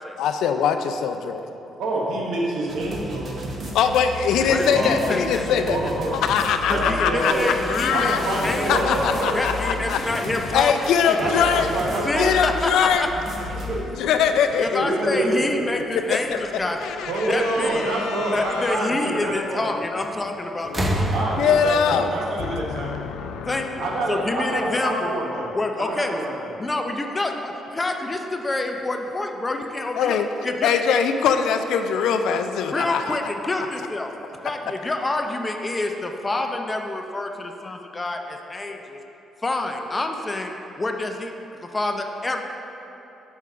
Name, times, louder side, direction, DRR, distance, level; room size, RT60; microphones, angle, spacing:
voice 1, 0.2-1.5 3.7-5.8 6.2-7.3 7.7-8.2 8.5-10.0 10.5-11.7 12.2-13.1 13.6-13.7 14.0-14.9 16.1-16.4 16.8-18.8 20.7-20.9 21.4-22.1 22.5-23.8 30.0-30.3 30.6-33.2, left 7 dB, 85° left, 7 dB, 0.3 m, -22 dB
voice 2, 1.8-3.5 4.6-5.0 5.7-6.2 6.7-7.5 7.9-9.6 11.2-12.4 13.7-14.0 14.8-15.5 17.0-19.7 21.1-23.1 23.8-25.5 25.8-26.5, right 1 dB, 75° right, -2 dB, 1.1 m, -26 dB
sound 1, 2.7-13.8, left 1 dB, 50° right, 0.9 m, -33 dB
voice 3, 4.4-5.5 6.7-8.9 9.3-10.7 11.1-11.2 12.0-13.1 14.6-17.0 17.3-18.0 18.3-21.3 23.4-23.8 24.1-25.1 25.5-26.1 26.6-30.7 32.7-34.1 34.4-39.0 39.4-42.4, left 2 dB, 25° left, 4 dB, 0.5 m, -27 dB
sound 2, 7.2-18.8, left 3 dB, 65° left, 0.7 m, -43 dB
sound 3, 20.0-20.3 20.6-23.4 24.5-24.6, right 1 dB, 20° right, 0.7 m, -28 dB
6.2 x 3.6 x 5.6 m, 3.0 s
cardioid pair, 90°, 0 cm